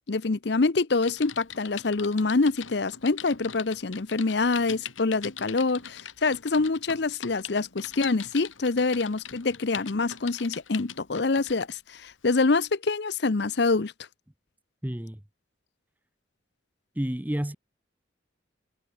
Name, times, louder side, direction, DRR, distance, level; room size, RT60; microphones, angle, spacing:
voice 1, 0.1-13.9, left 3 dB, 55° left, 0.7 m, -26 dB
Typing, 1.0-11.7 12.3-12.5, left 8 dB, 85° left, 3.2 m, -42 dB
voice 2, 14.8-15.2 16.9-17.6, equal, 10° right, 0.7 m, -30 dB
head